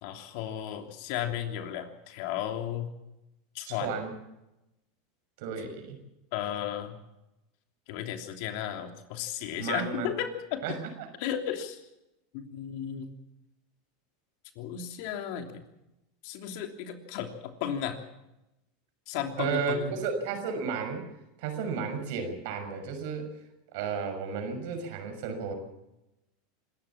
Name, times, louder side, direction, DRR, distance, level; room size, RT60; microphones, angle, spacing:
voice 1, 0.0-2.9 3.5-4.0 6.3-7.0 7.9-10.8 11.2-11.8 12.3-13.1 14.6-15.6 16.2-18.0 19.1-19.9, left 10 dB, 65° left, 5 dB, 3.1 m, -34 dB
voice 2, 3.7-4.2 5.4-6.0 9.6-10.1 10.6-11.1 19.4-21.0 21.4-23.3 23.7-25.5, right 5 dB, 65° right, 6 dB, 6.1 m, -33 dB
25.5 x 14.0 x 7.4 m, 0.93 s
hypercardioid pair, 100°, 0 cm